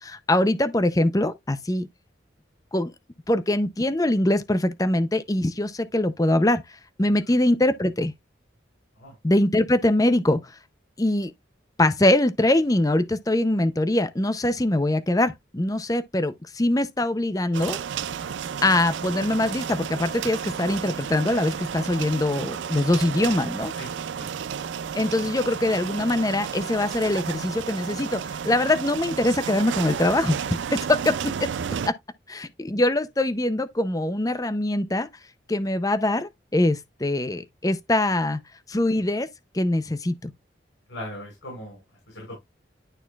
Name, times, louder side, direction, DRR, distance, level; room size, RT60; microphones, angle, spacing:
voice 1, 0.0-1.9 2.7-2.9 3.3-6.6 7.0-8.1 9.2-10.6 11.0-11.3 11.8-17.8 18.6-23.7 24.9-30.4 30.7-31.5 31.8-31.9 32.3-35.1 35.5-38.4 38.7-39.3 39.5-40.3, left 1 dB, 20° left, 0.6 m, -23 dB
sound 1, 17.5-31.9, right 7 dB, 80° right, 0.4 m, -32 dB
voice 2, 23.8-24.3 40.9-42.4, left 1 dB, 90° left, 5.3 m, -40 dB
11.5 x 4.2 x 2.4 m
head